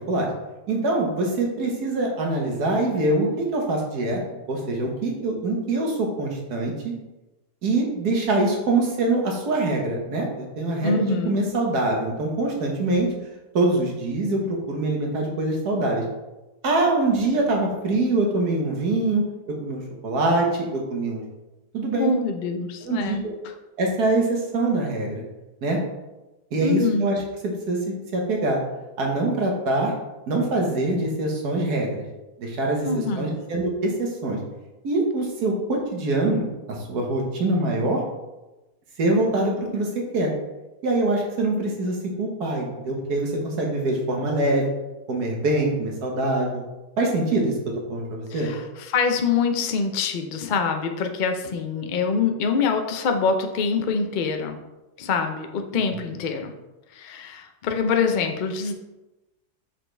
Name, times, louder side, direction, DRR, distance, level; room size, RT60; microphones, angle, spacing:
voice 1, 0.7-4.2 4.5-6.7 7.6-13.1 13.5-16.0 16.6-19.2 19.6-20.5 20.7-21.2 21.7-22.1 22.8-23.3 23.8-25.2 25.6-25.8 26.5-27.2 27.7-28.6 29.0-29.9 30.3-32.0 32.4-34.4 34.8-36.4 36.9-38.0 39.0-39.9 40.1-40.3 40.8-44.7 45.1-46.6 47.0-47.5 47.9-48.5 55.7-55.9, right 2 dB, 75° right, 0 dB, 1.7 m, -24 dB
voice 2, 10.8-11.4 22.0-23.5 26.6-27.1 32.8-33.4 48.3-54.6 55.0-56.5 56.9-58.7, left 5 dB, 80° left, 4 dB, 0.4 m, -25 dB
6.1 x 4.8 x 3.3 m, 1.0 s
omnidirectional pair, 1.7 m